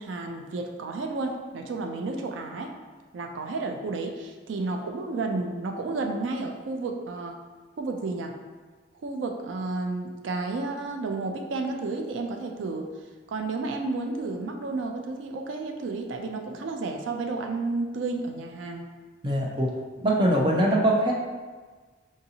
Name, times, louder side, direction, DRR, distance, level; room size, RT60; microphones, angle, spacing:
voice 1, 0.0-2.8 3.1-7.4 7.8-8.3 9.0-12.9 13.3-18.9, right 3 dB, 85° right, 4 dB, 0.4 m, -31 dB
voice 2, 19.2-19.7 20.0-21.1, right 1 dB, 25° right, -2 dB, 0.5 m, -22 dB
4.8 x 2.7 x 2.8 m, 1.4 s
head